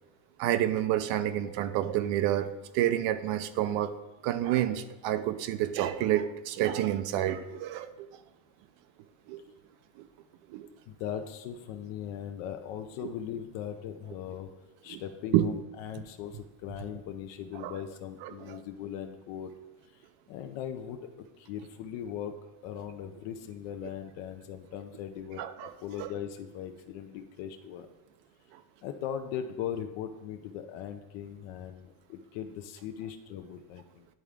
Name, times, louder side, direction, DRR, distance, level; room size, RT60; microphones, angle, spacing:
voice 1, 0.4-3.9 4.2-8.1 9.3-9.4 10.0-10.1 10.5-10.7 13.0-13.1 14.9-15.0 15.3-15.5 17.6-17.7 18.2-18.6 25.4-25.7 26.0-26.1, right 12 dB, 75° right, 11 dB, 0.6 m, -29 dB
voice 2, 10.9-14.5 14.8-19.5 19.9-21.1 21.4-22.3 22.6-25.4 25.8-27.9 28.8-34.1, left 9 dB, 80° left, 6 dB, 0.7 m, -39 dB
10.5 x 3.6 x 3.4 m, 1.1 s
cardioid pair, 135°, 44 cm